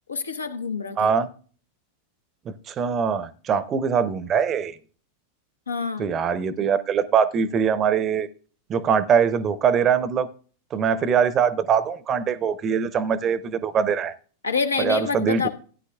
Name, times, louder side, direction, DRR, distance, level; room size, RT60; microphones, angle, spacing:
voice 1, 0.1-1.1 5.7-6.1 14.4-15.5, left 5 dB, 75° left, 1.2 m, -27 dB
voice 2, 1.0-1.3 2.7-4.8 6.0-8.3 8.7-10.3 10.7-14.1 14.8-15.5, right 7 dB, 30° right, 0.7 m, -22 dB
16.0 x 9.5 x 2.3 m
figure-of-eight pair, 90°, 0 cm